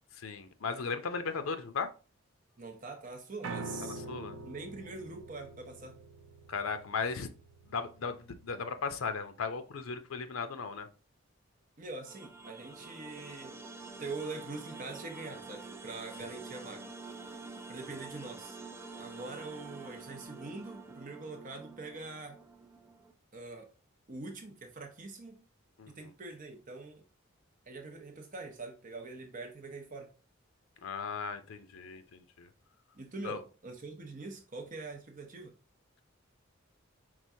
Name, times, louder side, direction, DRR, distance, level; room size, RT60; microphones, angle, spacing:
voice 1, 0.2-1.9 3.8-4.4 6.5-7.3 7.7-10.9 25.8-25.9 30.8-32.5 33.2-33.4, left 5 dB, 80° left, 0.5 m, -36 dB
voice 2, 2.6-4.0 4.4-6.0 11.8-13.6 14.0-16.9 17.7-18.6 18.9-22.4 23.3-23.7 24.1-25.4 25.9-27.0 27.7-30.1 32.9-35.5, right 3 dB, 40° right, 0.8 m, -44 dB
Piano, 3.4-9.6, right 3 dB, 85° right, 0.6 m, -46 dB
sound 1, 12.0-23.1, right 3 dB, 10° right, 0.4 m, -48 dB
4.7 x 3.7 x 2.7 m
head